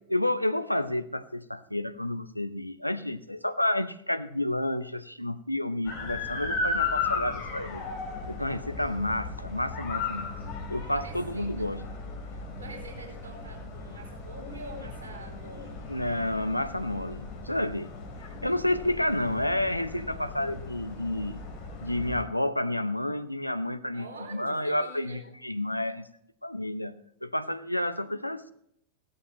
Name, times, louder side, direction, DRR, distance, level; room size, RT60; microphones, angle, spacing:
voice 1, 0.1-7.8 8.3-10.3 10.7-11.9 15.9-17.9 18.4-21.5 21.8-26.1 26.4-28.5, left 1 dB, 90° left, 13 dB, 0.7 m, -30 dB
sound 1, 5.8-22.2, left 4 dB, 45° left, 3.7 m, -36 dB
voice 2, 10.9-11.7 12.3-15.8 23.9-25.2, right 2 dB, 70° right, 0 dB, 4.7 m, -45 dB
16.5 x 13.0 x 2.9 m, 0.74 s
figure-of-eight pair, 90°, 0 cm